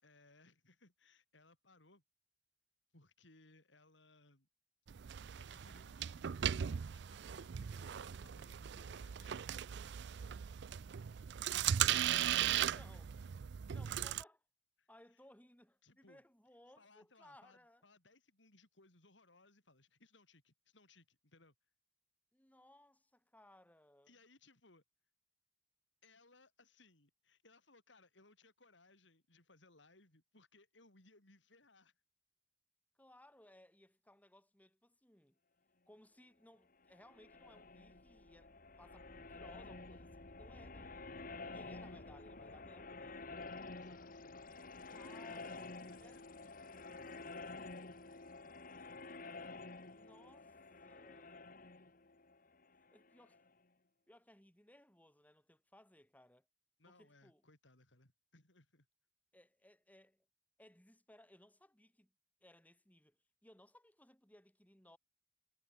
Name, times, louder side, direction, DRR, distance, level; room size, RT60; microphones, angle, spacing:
voice 1, 0.0-2.0 2.9-4.5 4.9-5.1 5.4-6.5 6.9-9.6 14.8-14.9 15.8-16.2 16.8-21.5 24.1-24.8 26.0-31.9 43.7-44.3 45.6-46.2 56.8-58.9, left 2 dB, 80° left, 5.5 m, -66 dB
sound 1, 4.9-14.2, right 10 dB, 65° right, 0.4 m, -38 dB
voice 2, 12.6-13.1 13.7-14.4 14.9-17.8 22.3-24.1 33.0-35.4 35.9-41.0 41.5-43.5 44.9-45.7 46.0-47.5 49.9-50.5 50.9-51.5 52.9-53.4 54.1-56.5 56.9-57.4 59.3-60.3 60.6-62.1 62.4-65.0, left 1 dB, 10° left, 7.6 m, -63 dB
sound 2, 36.9-53.5, left 3 dB, 50° left, 2.1 m, -50 dB
head